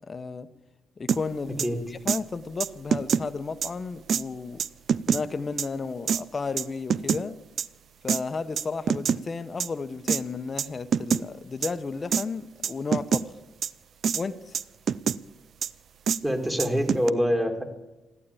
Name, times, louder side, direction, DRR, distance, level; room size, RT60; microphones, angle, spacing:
voice 1, 0.1-0.5 1.0-1.7 2.0-4.6 5.1-7.4 8.0-13.3 14.1-14.6, left 4 dB, 35° left, 0.9 m, -33 dB
sound 1, 1.1-1.2 1.6-1.7 2.1-2.2 2.6-3.2 3.6-3.7 4.1-4.2 4.6-5.2 5.6-5.7 6.1-6.2 6.6-7.2 7.6-7.7 8.1-8.2 8.6-9.2 9.6-9.7 10.1-10.2 10.6-10.7 10.9-11.2 11.6-11.7 12.1-12.2 12.6-13.2 13.6-13.7 14.0-14.2 14.5-15.2 15.6-15.7 16.1-16.2 16.6-17.1, right 7 dB, 55° right, 0.4 m, -25 dB
voice 2, 16.2-17.6, equal, 10° right, 2.4 m, -25 dB
14.5 x 11.5 x 8.4 m
cardioid pair, 90°, 0 cm